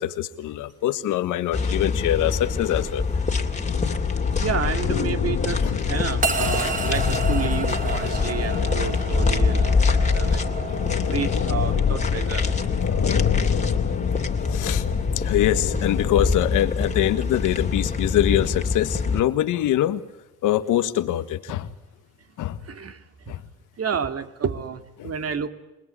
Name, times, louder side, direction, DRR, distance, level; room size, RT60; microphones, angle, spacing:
voice 1, 0.0-3.0 4.2-4.3 5.6-5.8 6.4-6.5 8.7-8.9 10.2-10.4 11.0-11.1 14.5-14.8 15.2-20.0 20.4-21.7 22.4-22.6 23.3-23.4 25.0-25.1, left 12 dB, 90° left, 11 dB, 1.7 m, -24 dB
sound 1, 1.5-19.2, left 4 dB, 25° left, 2.6 m, -26 dB
sound 2, 3.7-16.2, left 7 dB, 55° left, 1.8 m, -27 dB
voice 2, 4.4-12.5 15.1-15.2 22.6-23.4 23.8-25.5, right 7 dB, 50° right, 9 dB, 2.6 m, -31 dB
sound 3, 6.2-16.6, right 3 dB, 25° right, 3.3 m, -33 dB
28.0 x 21.0 x 9.8 m, 1.0 s
cardioid pair, 90°, 30 cm